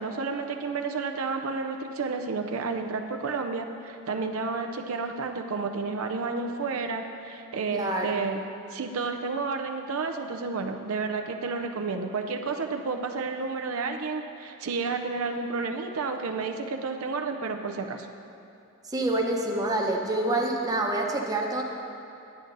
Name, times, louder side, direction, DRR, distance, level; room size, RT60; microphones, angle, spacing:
voice 1, 0.0-8.4 8.7-18.1, right 4 dB, 75° right, 5 dB, 0.5 m, -31 dB
voice 2, 7.7-8.2 18.9-21.6, right 2 dB, 15° right, 0 dB, 0.8 m, -27 dB
10.5 x 8.7 x 3.9 m, 2.7 s
head